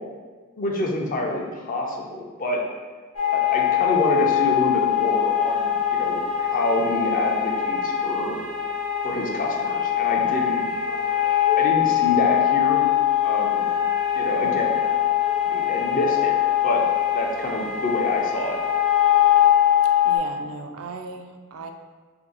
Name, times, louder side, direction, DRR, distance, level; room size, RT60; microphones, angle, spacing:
voice 1, 0.6-2.6 3.3-8.4 9.0-10.7 11.6-12.8 13.2-13.7 14.1-14.7 15.5-16.3 16.6-16.8 17.1-18.6, left 1 dB, 40° left, 0 dB, 0.4 m, -27 dB
sound 1, 3.2-20.2, left 10 dB, 75° left, 0.8 m, -22 dB
voice 2, 20.0-21.7, right 4 dB, 75° right, 5 dB, 0.3 m, -37 dB
2.7 x 2.6 x 3.8 m, 1.4 s
head